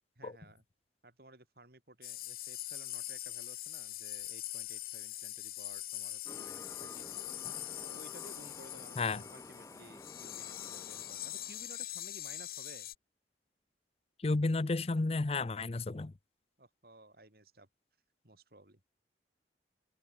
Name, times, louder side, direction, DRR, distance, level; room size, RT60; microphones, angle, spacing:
voice 1, 0.2-0.6 1.0-7.1 7.8-12.9 16.6-17.7 18.2-18.9, right 2 dB, 55° right, 4.8 m, -56 dB
sound 1, 2.0-13.0, left 15 dB, 55° left, 1.5 m, -43 dB
sound 2, 6.3-11.7, left 2 dB, 20° left, 1.9 m, -52 dB
voice 2, 14.2-16.1, left 3 dB, 35° left, 0.5 m, -32 dB
head